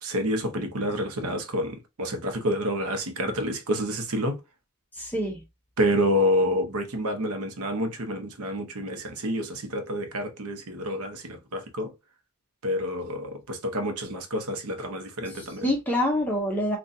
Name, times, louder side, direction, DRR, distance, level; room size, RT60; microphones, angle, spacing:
voice 1, 0.0-4.4 5.8-11.9 12.6-15.7, equal, 80° right, 0.8 m, -28 dB
voice 2, 5.0-5.4 15.3-16.8, left 1 dB, 10° left, 0.6 m, -26 dB
3.9 x 2.3 x 2.6 m
head